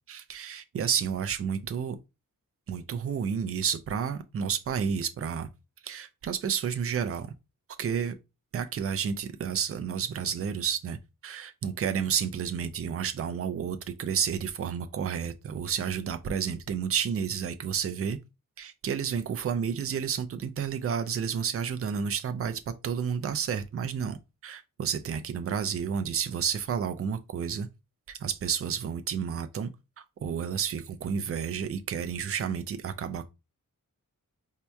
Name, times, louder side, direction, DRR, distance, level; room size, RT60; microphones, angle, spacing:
voice 1, 0.1-2.0 2.7-5.5 5.8-7.3 7.8-8.2 8.5-18.2 18.6-27.7 28.1-29.7 30.0-33.3, right 7 dB, 45° right, 0.4 m, -31 dB
4.4 x 2.8 x 2.2 m
wide cardioid pair, 155°, 33 cm